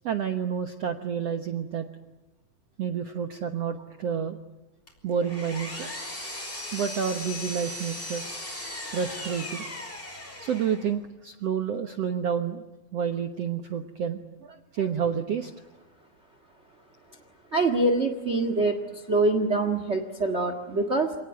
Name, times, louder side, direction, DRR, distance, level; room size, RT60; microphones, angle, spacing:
voice 1, 0.0-1.9 2.8-4.4 5.0-5.9 6.7-8.3 8.9-9.6 10.4-12.6 12.9-15.5, right 7 dB, 60° right, 7 dB, 1.7 m, -29 dB
Power tool, 4.9-10.9, left 1 dB, 15° left, 5.4 m, -37 dB
voice 2, 17.5-21.1, right 2 dB, 35° right, 8 dB, 1.0 m, -25 dB
28.0 x 19.0 x 9.8 m, 1.1 s
omnidirectional pair, 4.3 m